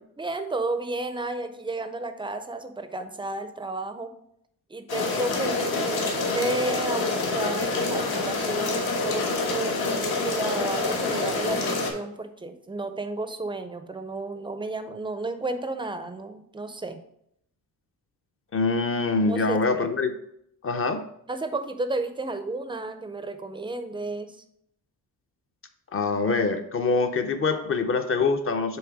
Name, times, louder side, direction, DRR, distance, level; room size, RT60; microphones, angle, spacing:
voice 1, 0.2-4.1 4.7-17.0 19.3-19.9 21.3-24.4, right 2 dB, 15° right, 9 dB, 0.4 m, -32 dB
sound 1, 4.9-11.9, left 3 dB, 80° left, 1.4 m, -27 dB
voice 2, 18.5-20.1 20.6-21.0 25.9-28.8, left 4 dB, 35° left, 7 dB, 0.5 m, -24 dB
7.1 x 3.3 x 4.7 m, 0.73 s
wide cardioid pair, 160°, 38 cm